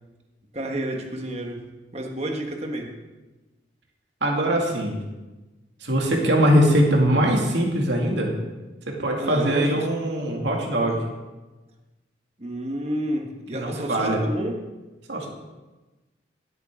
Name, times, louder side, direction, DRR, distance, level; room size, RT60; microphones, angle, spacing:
voice 1, 0.5-1.6 1.9-2.9 9.2-9.9 12.4-14.6, right 1 dB, 35° right, 2 dB, 1.4 m, -30 dB
voice 2, 4.2-5.0 5.8-8.3 8.9-11.0 13.5-14.2 15.1-15.3, equal, 70° right, 0 dB, 2.4 m, -21 dB
17.0 x 8.2 x 3.8 m, 1.2 s
head